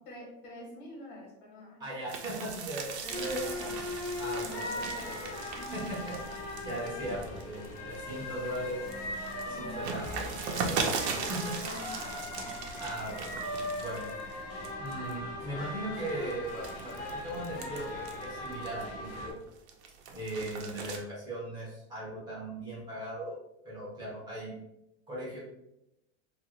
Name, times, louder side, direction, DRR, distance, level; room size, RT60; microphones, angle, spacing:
voice 1, 0.0-1.8 3.0-3.8 4.3-5.2 5.6-5.9 6.7-6.9 9.4-9.9 11.1-12.5, equal, 55° left, 0 dB, 1.1 m, -47 dB
voice 2, 1.8-3.4 4.2-5.3 5.5-6.4 6.6-8.8 9.4-11.0 11.3-11.5 12.8-13.3 13.8-14.1 14.8-19.4 20.1-23.4 23.6-24.5 25.1-25.4, right 1 dB, 15° right, -6 dB, 0.5 m, -38 dB
sound 1, 2.1-8.0 8.4-14.3 14.6-15.1 15.7-19.0 19.4-21.0, right 5 dB, 90° right, 0.6 m, -39 dB
sound 2, 3.1-19.3, left 1 dB, 30° left, 0.6 m, -39 dB
2.8 x 2.4 x 3.0 m, 0.87 s
supercardioid pair, 160°, 33 cm